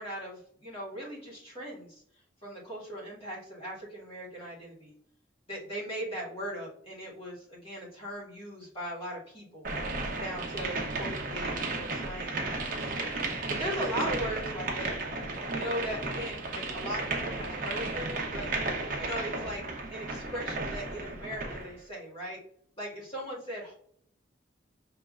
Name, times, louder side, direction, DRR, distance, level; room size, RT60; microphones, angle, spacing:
voice 1, 0.0-2.0 2.4-4.9 5.5-9.7 10.2-12.9 13.5-15.0 15.5-18.7 18.9-22.4 22.8-23.7, equal, 30° left, -6 dB, 1.8 m, -38 dB
sound 1, 9.6-21.7, right 3 dB, 50° right, 0.9 m, -34 dB
5.9 x 3.1 x 2.4 m, 0.64 s
head